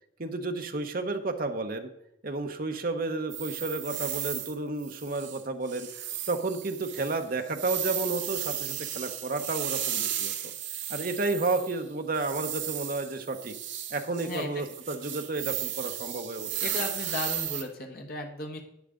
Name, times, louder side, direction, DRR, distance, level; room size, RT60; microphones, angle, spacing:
voice 1, 0.2-1.9 2.2-10.3 10.9-13.5 13.9-16.8, right 3 dB, 50° right, 6 dB, 0.9 m, -32 dB
sound 1, 3.3-4.6 4.8-5.4 5.7-11.8 12.1-17.6, right 11 dB, 75° right, 1.1 m, -35 dB
voice 2, 14.2-14.6 16.5-18.6, left 2 dB, 50° left, 3 dB, 1.2 m, -36 dB
10.5 x 8.7 x 3.8 m, 0.80 s
head